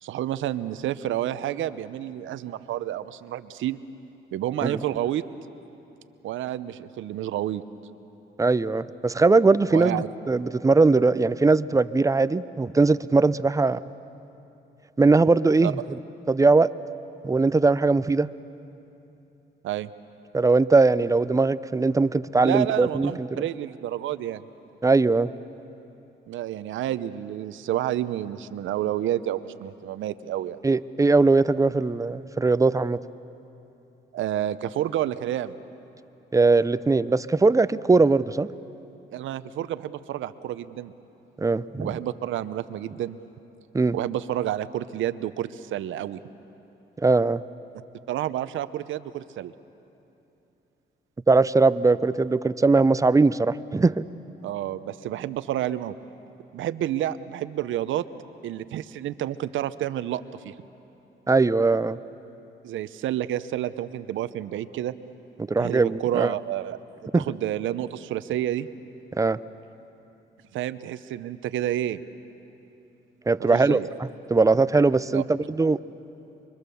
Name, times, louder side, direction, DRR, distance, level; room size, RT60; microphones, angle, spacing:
voice 1, 0.0-3.8 4.3-5.2 6.2-7.6 9.7-10.1 15.6-15.7 19.6-19.9 22.4-24.4 26.3-30.6 34.1-35.6 39.1-40.9 41.8-43.2 43.9-46.2 48.1-49.5 54.4-55.9 56.5-58.0 58.4-60.5 62.6-64.9 65.6-68.7 70.5-72.0 73.4-73.9 75.1-75.2, right 12 dB, 75° right, 13 dB, 0.8 m, -29 dB
voice 2, 8.4-13.8 15.0-15.8 16.3-16.7 17.2-18.3 20.3-23.4 24.8-25.3 30.6-33.0 36.3-38.5 41.4-41.9 43.7-44.0 47.0-47.4 51.3-54.0 61.3-62.0 65.5-66.3 67.1-67.2 69.2-69.4 73.3-73.8 74.3-75.8, right 3 dB, 15° right, 16 dB, 0.5 m, -20 dB
25.0 x 24.0 x 7.0 m, 2.9 s
cardioid pair, 90°, 20 cm